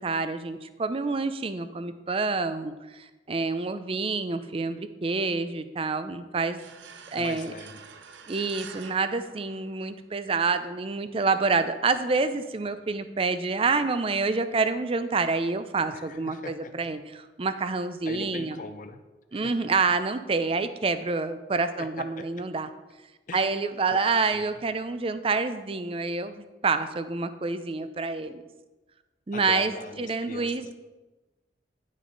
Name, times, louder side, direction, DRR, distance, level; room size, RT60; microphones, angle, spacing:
voice 1, 0.0-6.6 7.1-7.5 8.3-18.6 19.3-22.7 23.3-28.4 29.3-29.7 30.0-30.7, right 4 dB, 30° right, 11 dB, 0.5 m, -27 dB
sound 1, 6.6-10.2, right 6 dB, 90° right, 0.6 m, -47 dB
voice 2, 7.1-7.8 15.9-16.7 18.0-19.0 19.4-19.5 21.8-21.9 23.3-23.5 23.9-24.0 24.3-24.4 29.3-30.7, left 3 dB, 45° left, 8 dB, 0.5 m, -40 dB
10.5 x 6.4 x 3.9 m, 1.1 s
head